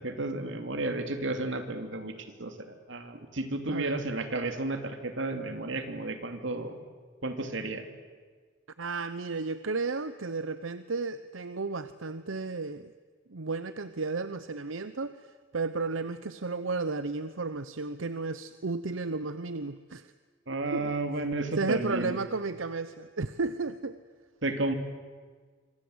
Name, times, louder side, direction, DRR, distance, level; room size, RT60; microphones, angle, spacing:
voice 1, 0.0-2.1 2.4-6.8 7.2-7.8 20.5-22.2 24.4-24.7, right 2 dB, 70° right, 7 dB, 2.9 m, -32 dB
voice 2, 3.7-4.0 8.8-12.9 13.3-20.1 20.7-20.9 21.6-24.0, right 3 dB, 90° right, 12 dB, 0.8 m, -33 dB
26.0 x 25.0 x 8.0 m, 1.5 s
head